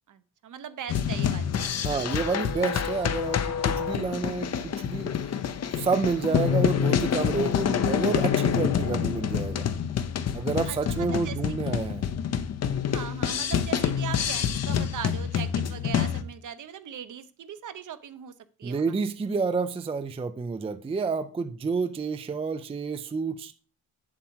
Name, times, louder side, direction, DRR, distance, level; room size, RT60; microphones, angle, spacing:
voice 1, 0.1-2.0 6.3-6.7 10.7-11.6 12.9-18.3 18.6-18.8, right 9 dB, 55° right, 0.8 m, -40 dB
sound 1, 0.9-16.2, left 8 dB, 45° left, 0.7 m, -27 dB
voice 2, 1.8-5.1 5.7-9.7 10.3-12.0 18.6-23.5, right 4 dB, 15° right, 0.4 m, -29 dB
8.2 x 7.4 x 4.6 m
cardioid pair, 150°, 37 cm